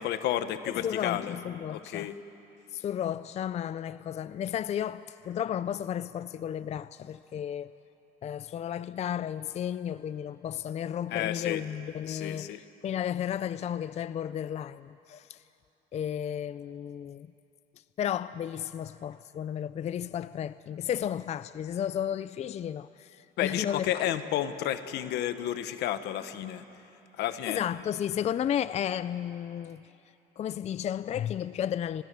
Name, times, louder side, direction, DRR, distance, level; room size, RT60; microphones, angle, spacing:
voice 1, 0.0-1.3 1.7-2.2 11.1-11.6 12.0-12.6 23.4-26.7 27.2-27.6, left 11 dB, 80° left, 1.2 m, -31 dB
voice 2, 0.7-2.1 2.7-7.7 8.2-15.4 15.9-17.3 18.0-24.0 27.4-29.8 30.4-32.0, left 9 dB, 40° left, 0.4 m, -33 dB
29.0 x 20.5 x 6.9 m
cardioid pair, 110°, 17 cm